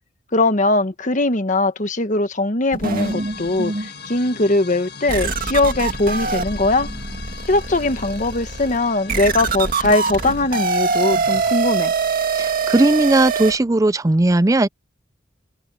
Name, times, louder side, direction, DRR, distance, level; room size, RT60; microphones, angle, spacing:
voice 1, 0.3-6.9 7.5-11.9, left 2 dB, 40° left, 1.3 m, -20 dB
sound 1, 2.7-3.9 4.4-4.6 5.1-13.6, right 4 dB, 50° right, 2.0 m, -24 dB
sound 2, 3.0-11.2, left 5 dB, 55° left, 1.7 m, -39 dB
voice 2, 12.3-14.7, right 2 dB, 15° right, 0.4 m, -17 dB
open air
head